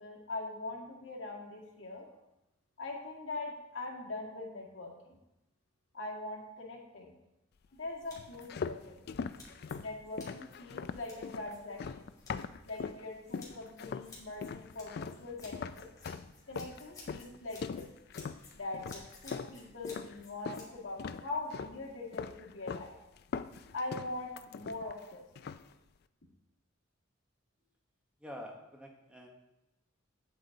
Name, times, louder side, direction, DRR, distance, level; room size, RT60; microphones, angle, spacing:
voice 1, 0.0-2.1 2.8-5.2 5.9-7.1 7.7-9.0 9.8-12.1 12.7-15.9 16.5-17.9 18.5-22.9 23.7-25.2, left 2 dB, 75° left, -2 dB, 2.1 m, -42 dB
sound 1, 7.7-20.7, left 3 dB, 20° left, 2.9 m, -56 dB
sound 2, 8.2-13.0 13.3-14.1 14.4-20.7 21.0-21.8 22.1-22.9 23.2-25.0 25.4-25.7, left 5 dB, 50° left, 0.3 m, -41 dB
voice 2, 28.2-29.3, equal, 5° right, 0 dB, 1.0 m, -47 dB
9.4 x 8.1 x 3.9 m, 0.95 s
head